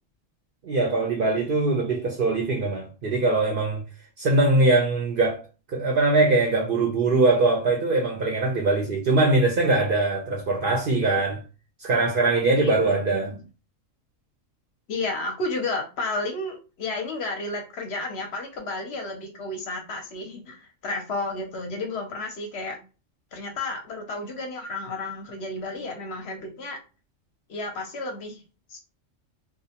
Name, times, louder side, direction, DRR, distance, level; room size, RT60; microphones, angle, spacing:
voice 1, 0.6-3.8 4.2-5.4 5.7-11.4 11.8-13.3, right 2 dB, 60° right, 0.6 m, -22 dB
voice 2, 12.5-13.4 14.9-22.8 23.3-26.8 27.5-28.4 28.7-28.8, left 2 dB, 65° left, 0.8 m, -32 dB
2.5 x 2.1 x 2.7 m
omnidirectional pair, 1.3 m